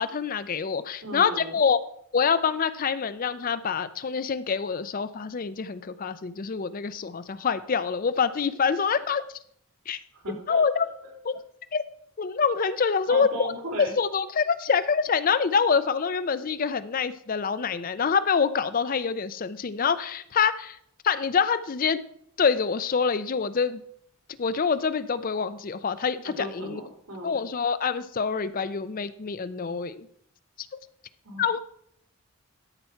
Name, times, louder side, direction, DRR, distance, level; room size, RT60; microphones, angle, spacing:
voice 1, 0.0-1.8 2.1-9.2 9.9-10.0 10.5-10.9 11.2-11.3 11.7-11.8 12.2-13.5 13.8-20.8 21.0-22.0 22.4-23.8 24.4-26.8 27.2-30.1 31.4-31.6, left 6 dB, 40° left, 14 dB, 0.4 m, -26 dB
voice 2, 1.0-1.6 10.1-11.1 13.1-13.9 26.2-27.4 31.2-31.4, right 1 dB, 85° right, 1 dB, 2.9 m, -36 dB
13.0 x 4.5 x 5.7 m, 0.67 s
head